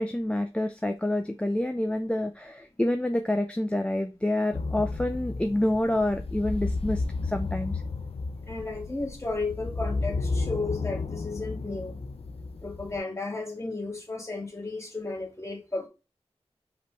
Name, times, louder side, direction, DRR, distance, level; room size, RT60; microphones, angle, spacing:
voice 1, 0.0-7.8, left 1 dB, 10° left, 0.5 m, -28 dB
sound 1, 4.5-13.0, left 3 dB, 60° left, 0.5 m, -33 dB
voice 2, 8.5-12.0 12.6-15.9, left 3 dB, 25° left, 2.0 m, -34 dB
5.0 x 3.1 x 3.2 m
wide cardioid pair, 60°, 11 cm